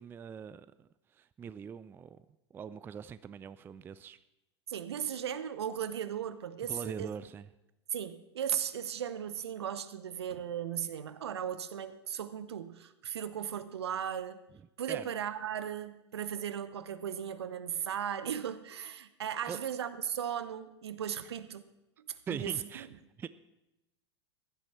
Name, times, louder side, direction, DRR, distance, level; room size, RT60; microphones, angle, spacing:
voice 1, 0.0-2.2 2.5-4.2 6.7-7.5 14.9-15.1 19.5-19.6 22.3-22.9 23.2-23.3, right 7 dB, 15° right, 16 dB, 0.3 m, -42 dB
voice 2, 4.7-7.1 7.9-14.4 14.8-21.6 22.0-22.5, right 9 dB, 70° right, 14 dB, 0.9 m, -37 dB
15.5 x 12.0 x 4.3 m, 0.90 s
figure-of-eight pair, 90°, 14 cm